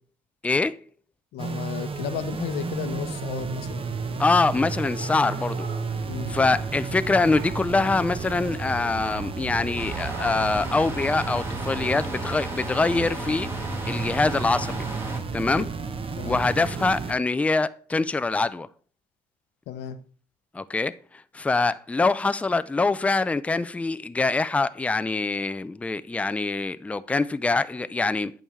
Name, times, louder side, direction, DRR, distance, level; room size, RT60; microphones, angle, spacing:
voice 1, 0.4-0.8 4.2-5.7 6.3-13.5 13.8-14.8 15.3-15.7 16.2-18.7 20.5-20.9 21.3-28.3, left 3 dB, 10° left, 0.3 m, -24 dB
voice 2, 1.3-3.9 6.1-6.4 15.6-15.7 16.2-16.4 19.7-20.0, left 10 dB, 80° left, 0.8 m, -33 dB
sound 1, 1.4-17.1, right 4 dB, 35° right, 0.8 m, -32 dB
sound 2, 4.6-7.0 7.3-7.8 8.9-9.5 10.1-10.6, right 5 dB, 65° right, 1.6 m, -43 dB
sound 3, 9.8-15.2, right 1 dB, 15° right, 1.5 m, -35 dB
8.9 x 7.1 x 3.2 m
cardioid pair, 110°, 17 cm